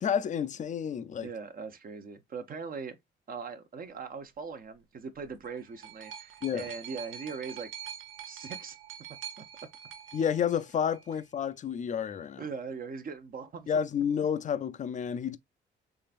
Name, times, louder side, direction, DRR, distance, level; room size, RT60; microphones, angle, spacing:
voice 1, 0.0-1.3 6.4-6.7 10.1-12.4 13.7-15.4, left 8 dB, 40° left, 0.4 m, -30 dB
voice 2, 1.2-3.0 3.3-7.7 8.2-8.8 12.4-13.7, right 5 dB, 45° right, 0.7 m, -40 dB
sound 1, 5.3-11.2 12.1-12.2, right 9 dB, 80° right, 0.8 m, -45 dB
3.7 x 3.3 x 2.5 m
cardioid pair, 90°, 20 cm